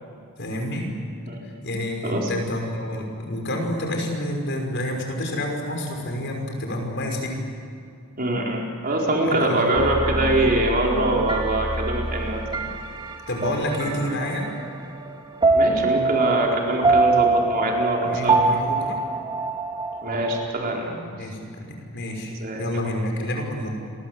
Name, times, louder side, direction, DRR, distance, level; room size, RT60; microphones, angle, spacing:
voice 1, 0.4-0.9 1.4-7.4 9.2-9.7 13.3-14.5 18.0-19.0 21.1-23.7, left 1 dB, 55° left, 2 dB, 6.0 m, -29 dB
voice 2, 8.2-12.4 15.5-18.4 20.0-21.0 22.4-22.6, right 1 dB, 40° right, -1 dB, 4.5 m, -23 dB
sound 1, 9.7-20.5, right 3 dB, 20° right, 2.5 m, -24 dB
29.5 x 23.0 x 8.1 m, 2.5 s
head